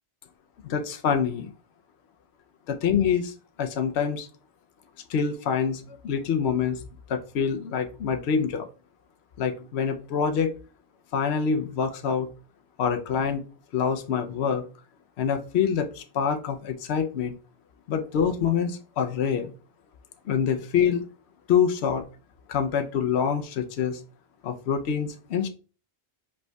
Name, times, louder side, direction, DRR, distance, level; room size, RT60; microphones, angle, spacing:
voice 1, 0.6-1.5 2.7-3.3 3.6-4.3 5.1-6.8 7.1-8.7 9.4-10.5 11.1-12.3 12.8-13.4 13.7-14.6 15.2-17.3 17.9-19.5 20.3-21.0 21.5-22.0 22.5-24.0 24.4-25.5, left 7 dB, 75° left, 5 dB, 0.9 m, -26 dB
5.0 x 4.7 x 2.2 m, 0.36 s
omnidirectional pair, 1.1 m